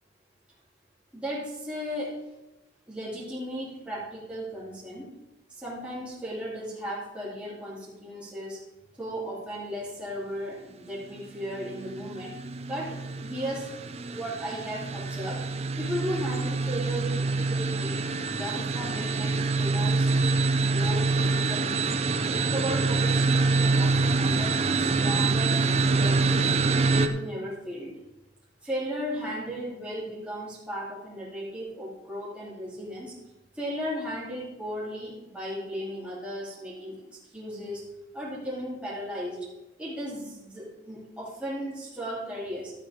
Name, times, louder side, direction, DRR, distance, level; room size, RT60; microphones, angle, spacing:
voice 1, 1.1-2.2 2.9-5.1 5.5-8.6 9.0-12.3 12.7-13.7 14.0-15.4 15.8-18.0 18.3-21.8 22.2-24.5 24.8-25.6 25.9-26.3 26.7-27.9 28.6-33.1 33.5-37.0 37.3-37.8 38.1-39.5 39.8-42.7, equal, 5° right, -8 dB, 2.9 m, -35 dB
sound 1, 11.5-27.1, right 3 dB, 35° right, 0.5 m, -26 dB
12.5 x 8.9 x 3.7 m, 0.96 s
head